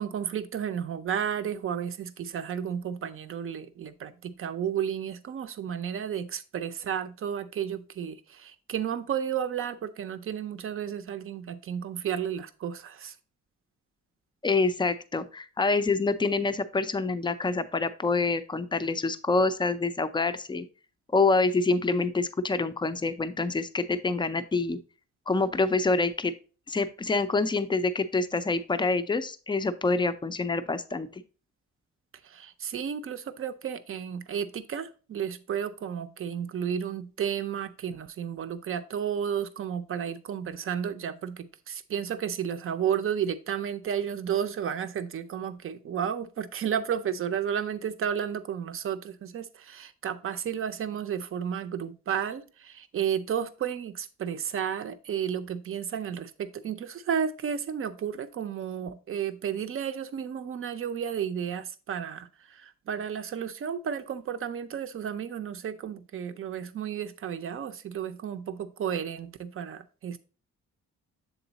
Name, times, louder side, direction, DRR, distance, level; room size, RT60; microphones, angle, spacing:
voice 1, 0.0-13.1 32.2-70.2, right 8 dB, 45° right, 0.5 m, -32 dB
voice 2, 14.4-20.7 21.1-24.8 25.3-26.3 26.7-31.2, left 3 dB, 15° left, 0.4 m, -26 dB
7.1 x 3.9 x 3.9 m
cardioid pair, 135°, 30 cm